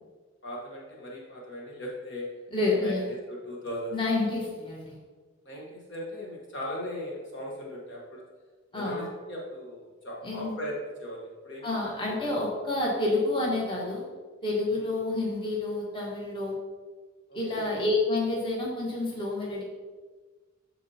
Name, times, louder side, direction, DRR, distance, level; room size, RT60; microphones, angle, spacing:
voice 1, 0.4-2.3 2.8-3.0 3.3-3.9 5.4-8.2 8.7-11.8 12.2-12.5 14.7-14.8 17.3-17.7, equal, 55° left, -3 dB, 1.2 m, -38 dB
voice 2, 2.5-3.0 3.9-5.0 8.7-9.1 10.2-10.5 11.6-14.0 14.4-16.6 17.3-19.6, left 2 dB, 25° left, -3 dB, 1.3 m, -29 dB
12.5 x 4.3 x 2.8 m, 1.4 s
head